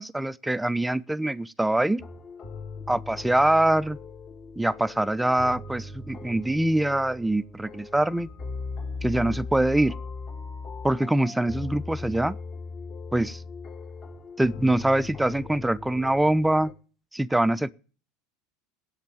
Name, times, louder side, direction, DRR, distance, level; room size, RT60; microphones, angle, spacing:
voice 1, 0.0-2.0 2.9-4.0 4.6-8.3 9.0-9.9 10.8-12.4 13.1-13.4 14.4-16.7 17.1-17.7, right 1 dB, 5° right, 0.5 m, -24 dB
sound 1, 2.0-16.7, left 4 dB, 35° left, 2.2 m, -39 dB
8.3 x 8.1 x 8.8 m
hypercardioid pair, 90°, 0 cm